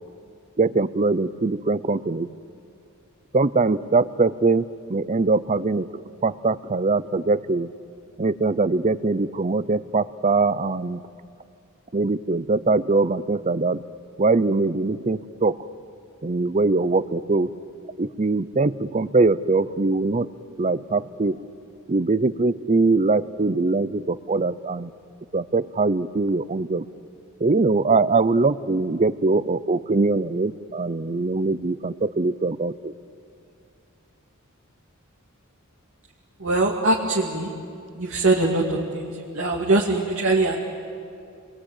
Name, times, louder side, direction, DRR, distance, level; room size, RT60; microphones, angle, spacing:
voice 1, 0.6-2.3 3.3-4.6 4.9-5.9 6.2-7.7 8.2-11.0 11.9-13.8 14.2-15.5 16.2-17.5 18.0-20.3 20.6-21.4 21.9-24.9 25.3-26.8 27.4-32.9, right 3 dB, 35° right, 16 dB, 0.6 m, -22 dB
voice 2, 36.4-37.5 37.9-40.5, right 2 dB, 65° right, -3 dB, 2.4 m, -22 dB
30.0 x 22.0 x 9.0 m, 2.5 s
head